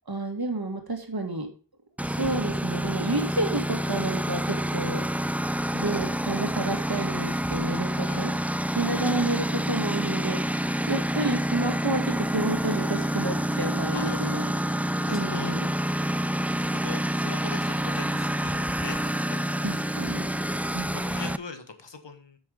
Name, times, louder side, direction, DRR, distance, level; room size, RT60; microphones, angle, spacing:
voice 1, 0.1-1.5 2.0-5.0 5.7-8.3 8.7-10.6 10.9-14.5 15.1-15.7 19.6-20.3 20.7-21.0, right 2 dB, 60° right, 4 dB, 2.2 m, -30 dB
Engine, 2.0-21.4, equal, 5° right, 0.4 m, -28 dB
voice 2, 8.0-8.4 13.9-14.5 15.0-15.5 16.7-19.6 20.7-22.4, left 4 dB, 80° left, 8 dB, 1.4 m, -41 dB
8.8 x 6.3 x 5.3 m, 0.36 s
wide cardioid pair, 55°, 42 cm